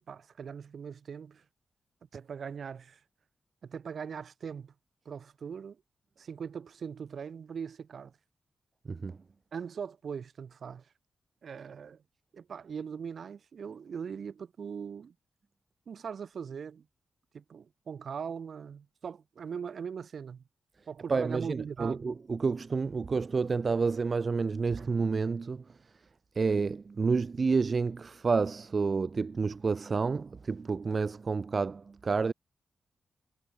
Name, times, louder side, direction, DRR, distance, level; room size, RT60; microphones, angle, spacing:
voice 1, 0.1-1.4 2.1-3.0 3.6-4.7 5.0-5.8 6.2-8.2 9.5-10.9 11.4-12.0 12.3-15.1 15.9-16.9 17.3-20.4 20.9-22.0, right 6 dB, 55° right, 6.0 m, -40 dB
voice 2, 8.8-9.2 21.1-25.9 26.3-32.3, right 4 dB, 35° right, 0.8 m, -29 dB
wide cardioid pair, 160°, 0 cm